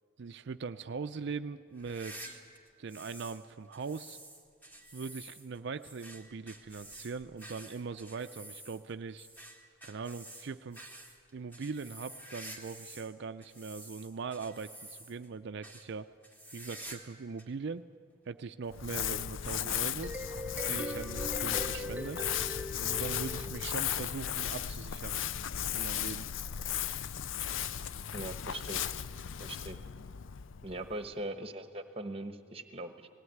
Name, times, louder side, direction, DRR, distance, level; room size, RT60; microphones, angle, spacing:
voice 1, 0.2-2.4 2.8-4.2 4.9-9.3 9.8-10.8 11.3-16.1 16.5-17.9 18.3-20.2 20.6-22.2 22.8-25.4 25.7-26.3, right 5 dB, 55° right, 10 dB, 0.4 m, -41 dB
sound 1, 1.7-3.4 3.7-13.1 13.4-15.3 15.6-15.9 16.2-17.1 17.4-17.5 18.3-18.4 19.6-19.7, right 1 dB, 10° left, 1.7 m, -50 dB
Crumpling crinkling, 18.7-31.1, left 9 dB, 65° left, 0.5 m, -36 dB
sound 2, 20.0-24.2, equal, 10° right, 0.6 m, -41 dB
voice 2, 28.1-28.9 29.4-29.8 30.6-33.1, right 1 dB, 30° right, 9 dB, 1.1 m, -41 dB
19.0 x 16.0 x 9.4 m, 2.1 s
head